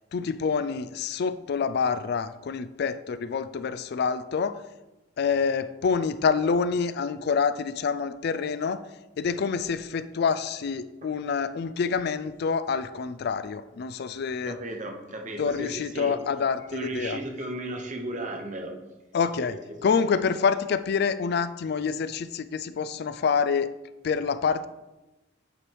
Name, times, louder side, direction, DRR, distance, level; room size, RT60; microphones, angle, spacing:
voice 1, 0.1-4.6 5.2-8.8 9.2-14.6 15.4-17.2 19.1-19.6 19.8-23.7 24.0-24.7, left 5 dB, 55° left, 13 dB, 0.4 m, -27 dB
voice 2, 14.5-16.2 16.7-18.7 19.4-19.5, right 1 dB, 40° right, 3 dB, 0.9 m, -35 dB
8.7 x 3.3 x 4.6 m, 1.0 s
head